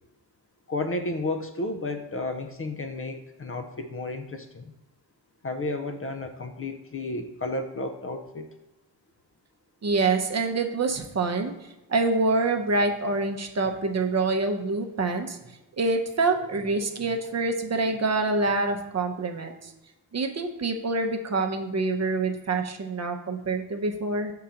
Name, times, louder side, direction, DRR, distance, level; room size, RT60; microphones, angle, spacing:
voice 1, 0.7-4.7 5.4-8.5, left 2 dB, 35° left, 6 dB, 0.5 m, -32 dB
voice 2, 9.8-11.5 11.9-15.4 15.8-19.7 20.1-24.3, right 3 dB, 40° right, 4 dB, 0.7 m, -26 dB
7.3 x 3.8 x 5.6 m, 1.0 s
wide cardioid pair, 145°, 41 cm